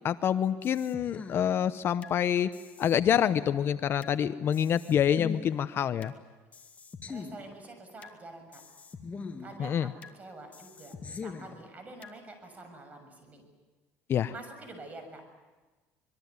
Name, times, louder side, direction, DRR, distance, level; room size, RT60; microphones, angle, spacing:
voice 1, 0.0-2.5 2.8-6.1 9.6-9.9 14.1-14.3, left 9 dB, 45° left, 13 dB, 0.8 m, -27 dB
sound 1, 0.6-2.2 2.5-4.2 4.5-6.2 6.5-8.2 8.5-10.2 10.5-12.2, left 4 dB, 25° left, 2.3 m, -43 dB
voice 2, 7.1-8.6 9.4-9.9 10.2-13.4 14.3-15.2, right 2 dB, 25° right, 6 dB, 6.8 m, -47 dB
25.5 x 22.0 x 9.6 m, 1.3 s
cardioid pair, 120°, 6 cm